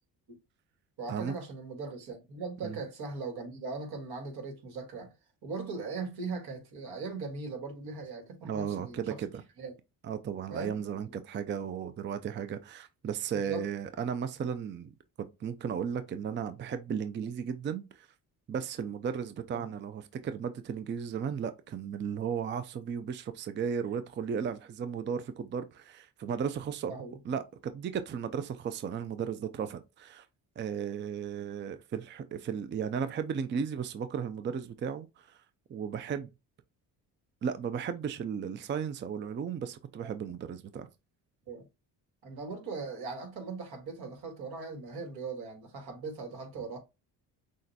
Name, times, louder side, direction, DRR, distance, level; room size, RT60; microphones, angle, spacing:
voice 1, 1.0-5.1 5.4-9.2 9.6-9.7 10.5-10.7 11.0-11.1 13.3-13.6 19.5-19.7 26.9-27.2 40.0-40.1 41.5-41.6 42.2-46.8, right 4 dB, 75° right, 1.7 m, -39 dB
voice 2, 8.4-9.3 10.0-14.9 15.4-18.1 18.5-26.9 27.3-30.3 30.6-35.4 35.7-36.3 37.4-40.9, right 7 dB, 30° right, 0.4 m, -35 dB
6.2 x 2.2 x 2.7 m
cardioid pair, 90°, 38 cm